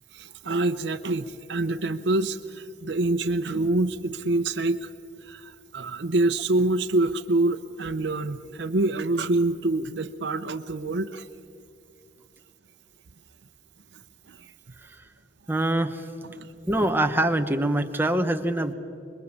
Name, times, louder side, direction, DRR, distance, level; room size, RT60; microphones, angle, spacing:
voice 1, 0.1-4.9 5.3-11.2 14.3-14.4, right 2 dB, 80° right, 7 dB, 0.8 m, -26 dB
voice 2, 15.5-16.0 16.7-18.7, right 1 dB, 10° right, 6 dB, 1.1 m, -24 dB
26.0 x 22.0 x 7.2 m, 2.5 s
head